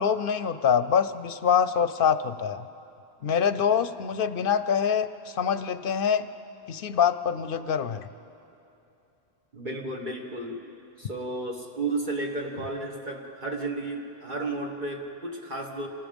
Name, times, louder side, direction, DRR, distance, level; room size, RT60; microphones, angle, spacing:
voice 1, 0.0-2.7 3.2-6.3 6.7-8.1, left 7 dB, 65° left, 12 dB, 0.8 m, -25 dB
voice 2, 9.5-10.6 11.0-15.9, right 2 dB, 50° right, 0 dB, 1.6 m, -33 dB
27.5 x 19.5 x 5.3 m, 2.8 s
omnidirectional pair, 1.0 m